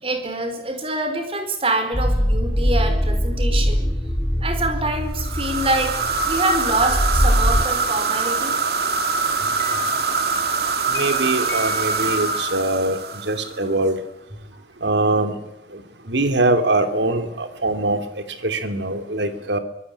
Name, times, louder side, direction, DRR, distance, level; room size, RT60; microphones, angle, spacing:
voice 1, 0.0-3.9 4.4-6.0 6.2-8.6, right 2 dB, 30° right, 7 dB, 4.6 m, -25 dB
sound 1, 1.9-7.7, equal, 5° left, 1.4 m, -22 dB
sound 2, 5.1-13.7, right 5 dB, 60° right, 2.3 m, -24 dB
sound 3, 6.0-12.6, left 5 dB, 85° left, 3.2 m, -34 dB
voice 2, 10.9-14.0 14.8-15.4 15.7-15.8 16.1-19.6, right 2 dB, 75° right, 9 dB, 3.0 m, -22 dB
24.0 x 19.5 x 9.9 m, 0.86 s
head